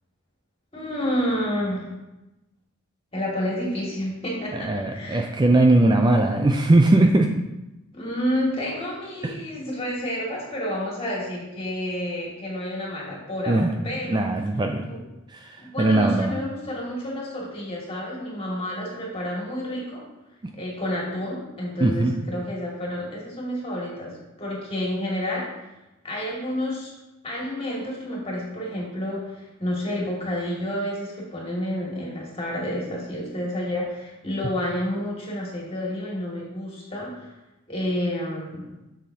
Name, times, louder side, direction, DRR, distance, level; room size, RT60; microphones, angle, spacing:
voice 1, 0.7-1.9 3.1-5.4 7.9-14.2 14.7-15.0 15.6-20.0 20.5-24.1 24.4-25.5 26.0-26.9 27.2-37.3 37.7-38.7, left 1 dB, 30° left, -4 dB, 2.2 m, -30 dB
voice 2, 4.5-7.3 9.2-9.3 13.5-13.7 14.1-14.9 15.3-16.3 21.8-22.2, right 2 dB, 20° right, 4 dB, 0.4 m, -20 dB
7.3 x 7.1 x 2.8 m, 0.97 s
head